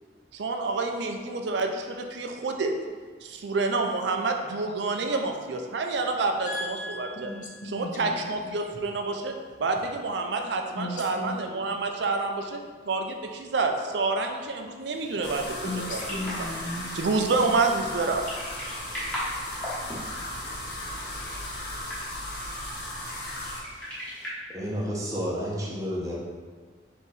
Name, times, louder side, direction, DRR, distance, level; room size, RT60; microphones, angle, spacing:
voice 1, 0.3-2.7 3.2-7.3 7.7-16.0 16.4-16.5 16.9-18.3, right 3 dB, 75° right, 4 dB, 0.4 m, -28 dB
voice 2, 6.5-8.6 10.7-11.3 15.6-17.0 20.0-20.1, left 1 dB, 45° left, 0 dB, 0.6 m, -36 dB
sound 1, 14.9-24.3, equal, 5° left, 1.2 m, -40 dB
sound 2, 15.2-23.6, left 1 dB, 65° left, 0.9 m, -36 dB
voice 3, 24.5-26.1, equal, 20° right, -6 dB, 0.7 m, -30 dB
3.7 x 2.9 x 4.1 m, 1.5 s
head